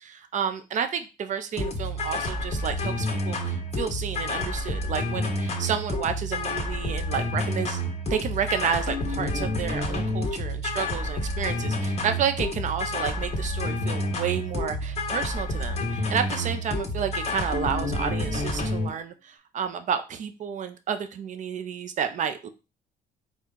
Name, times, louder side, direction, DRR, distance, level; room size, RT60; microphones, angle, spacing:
voice 1, 0.0-7.8 8.1-22.5, right 7 dB, 45° right, 9 dB, 0.6 m, -31 dB
sound 1, 1.6-18.9, left 1 dB, 40° left, 1.3 m, -29 dB
4.4 x 2.4 x 3.8 m, 0.30 s
cardioid pair, 110°, 17 cm